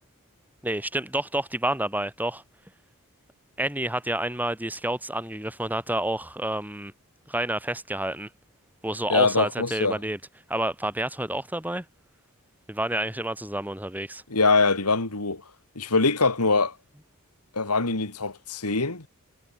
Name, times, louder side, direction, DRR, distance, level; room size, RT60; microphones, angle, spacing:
voice 1, 0.6-2.4 3.6-6.9 7.3-8.3 8.8-10.2 10.5-11.8 12.7-14.2, right 1 dB, 10° right, 3.4 m, -29 dB
voice 2, 9.1-10.0 14.3-15.4 15.7-16.7 17.5-19.1, left 3 dB, 90° left, 3.0 m, -23 dB
head